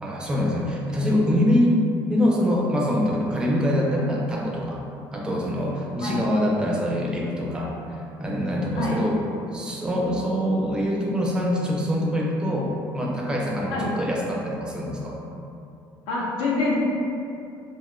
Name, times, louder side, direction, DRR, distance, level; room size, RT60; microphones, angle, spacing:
voice 1, 0.0-1.8 2.1-4.8 5.1-7.7 8.2-9.2 9.5-15.2, equal, 10° right, -2 dB, 0.3 m, -24 dB
voice 2, 16.1-16.8, left 3 dB, 75° left, -5 dB, 0.7 m, -26 dB
2.5 x 2.4 x 2.9 m, 2.6 s
cardioid pair, 155°, 9 cm